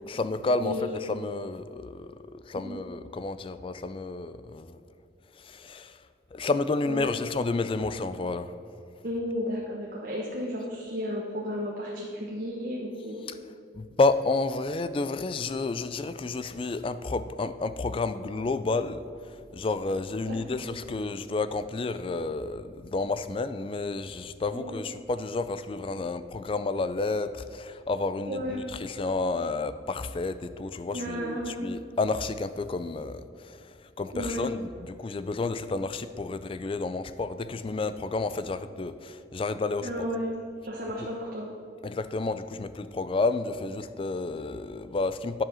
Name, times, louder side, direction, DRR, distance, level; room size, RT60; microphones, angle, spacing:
voice 1, 0.1-4.8 5.4-6.0 6.3-8.5 13.7-39.9 41.8-45.4, left 3 dB, 30° left, 12 dB, 0.3 m, -30 dB
voice 2, 9.0-13.3 20.3-20.6 24.5-24.7 28.3-28.6 30.9-31.6 34.1-34.5 39.8-40.3 40.6-41.5, equal, 45° right, -3 dB, 1.1 m, -33 dB
10.5 x 7.5 x 6.2 m, 2.3 s
head